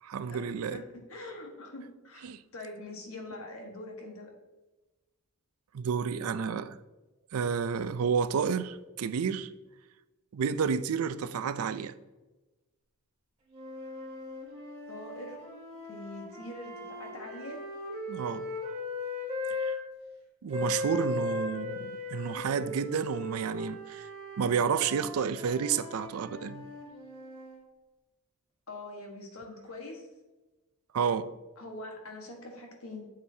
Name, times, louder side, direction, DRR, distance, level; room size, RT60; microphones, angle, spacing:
voice 1, 0.0-0.8 2.2-2.4 5.7-6.8 7.3-9.5 10.3-11.9 18.1-18.5 19.6-19.7 20.4-24.1 24.4-26.7 30.9-31.3, right 6 dB, 75° right, 0.4 m, -30 dB
voice 2, 1.1-4.3 14.9-15.4 15.9-17.6 28.7-30.1 31.6-33.1, left 1 dB, 70° left, 1.4 m, -43 dB
sound 1, 13.5-19.8 20.5-27.6, left 2 dB, 30° right, 2.4 m, -38 dB
7.8 x 7.1 x 2.8 m
head